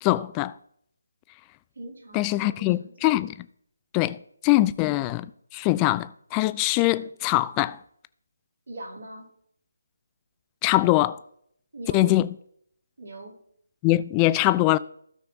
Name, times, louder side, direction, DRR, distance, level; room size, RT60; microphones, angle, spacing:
voice 1, 0.0-0.5 2.1-3.3 3.9-4.2 4.4-7.8 10.6-11.2 11.9-12.3 13.8-14.8, left 17 dB, 20° left, 0.3 m, -22 dB
voice 2, 1.7-3.1 8.7-9.3 11.7-12.2 13.0-13.4, right 2 dB, 65° right, 2.9 m, -41 dB
16.0 x 5.7 x 2.8 m
figure-of-eight pair, 155°, 0 cm